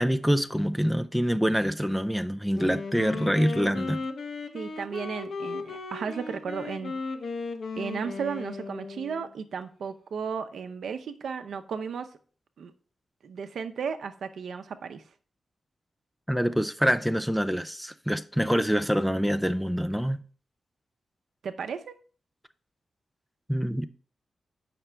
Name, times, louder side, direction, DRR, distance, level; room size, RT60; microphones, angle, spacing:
voice 1, 0.0-4.0 16.3-20.2 23.5-23.9, equal, ahead, 0.4 m, -25 dB
Wind instrument woodwind instrument, 2.5-9.3, left 4 dB, 65° left, 0.8 m, -36 dB
voice 2, 4.5-7.0 7.8-12.1 12.6-12.7 13.2-15.0 21.4-22.0, right 6 dB, 85° right, 0.7 m, -34 dB
8.6 x 5.9 x 3.4 m
wide cardioid pair, 105°, 0 cm